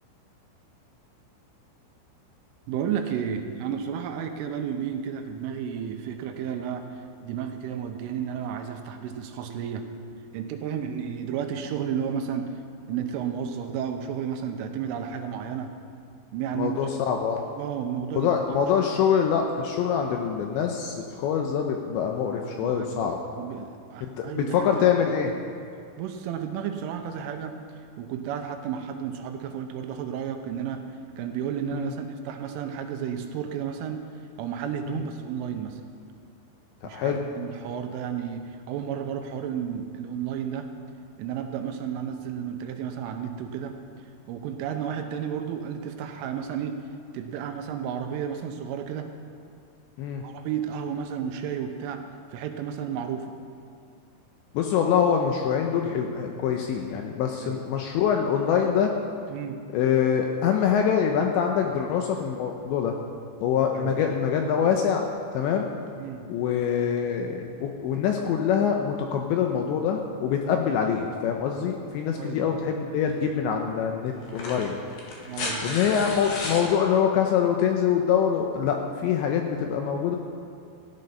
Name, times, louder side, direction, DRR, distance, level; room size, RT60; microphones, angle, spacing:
voice 1, 2.7-9.9 10.3-12.6 12.9-15.7 16.3-16.9 17.6-18.9 22.6-24.9 26.0-30.9 31.2-34.0 34.4-35.8 36.8-40.7 41.2-43.8 44.3-46.8 47.1-49.1 50.2-53.3 57.4-57.6 59.3-59.6 63.7-64.0 66.0-66.3 72.2-72.6 75.3-75.8, right 8 dB, 80° right, 5 dB, 3.2 m, -32 dB
voice 2, 16.6-17.4 18.2-23.2 24.0-25.3 31.7-31.9 34.9-35.0 36.8-37.2 50.0-50.2 54.5-58.9 59.7-62.9 63.4-65.1 65.3-65.7 66.3-74.8 75.6-80.2, left 8 dB, 80° left, 3 dB, 2.7 m, -25 dB
sound 1, 73.1-73.2 74.2-76.7 78.2-78.3, left 2 dB, 60° left, 3.3 m, -33 dB
15.5 x 10.5 x 5.6 m, 2.4 s
omnidirectional pair, 5.9 m